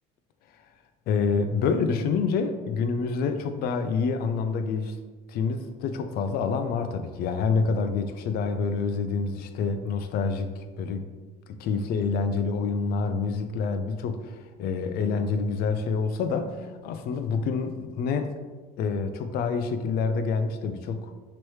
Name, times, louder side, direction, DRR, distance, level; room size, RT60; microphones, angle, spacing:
voice 1, 1.1-5.0 5.3-11.0 11.6-18.3 18.8-21.1, left 5 dB, 55° left, 8 dB, 0.4 m, -27 dB
3.1 x 3.0 x 4.6 m, 1.3 s
cardioid pair, 120°, 19 cm